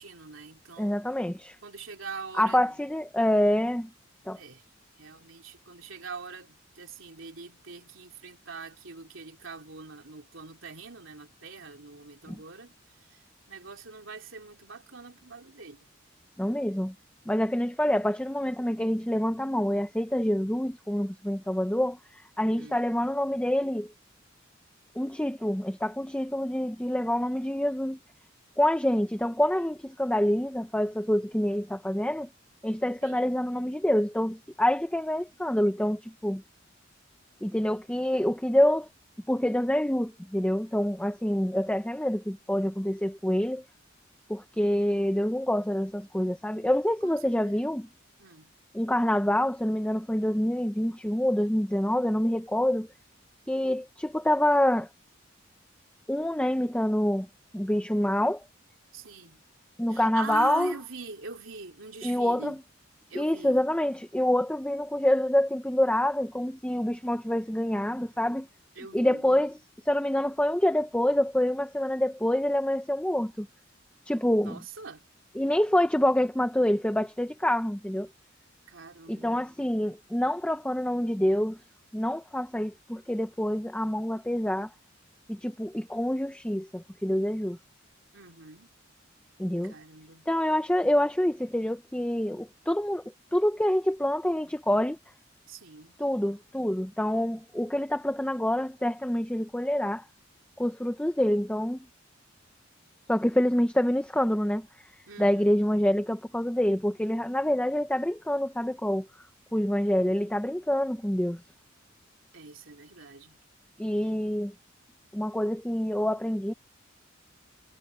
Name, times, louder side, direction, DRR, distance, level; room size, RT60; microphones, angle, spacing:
voice 1, 0.0-1.1 1.6-2.8 4.3-4.7 5.0-12.7 13.0-15.9 22.4-22.8 33.0-33.3 47.0-47.7 48.2-48.5 58.9-59.4 59.9-62.6 63.1-63.6 68.7-69.2 74.4-75.1 78.7-79.4 88.1-88.7 89.6-90.3 95.5-96.0 105.1-105.6 112.3-113.4 114.0-114.1, right 4 dB, 80° right, 3.2 m, -43 dB
voice 2, 0.8-1.5 2.3-3.9 4.3-4.4 12.3-12.4 16.4-16.9 17.3-23.9 25.0-28.0 28.6-32.3 32.6-36.4 37.4-38.9 39.3-43.6 44.3-47.9 48.7-52.9 53.5-54.9 56.1-57.3 57.5-58.4 59.8-60.7 62.0-62.6 63.1-68.5 68.9-69.5 69.9-73.5 74.1-74.6 75.4-78.1 79.1-81.6 81.9-84.7 85.3-87.6 89.4-89.7 90.3-93.0 93.3-95.0 96.0-100.0 100.6-101.9 103.1-104.7 105.2-109.1 109.5-111.4 113.8-114.5 115.1-116.5, left 1 dB, 5° left, 0.8 m, -26 dB
head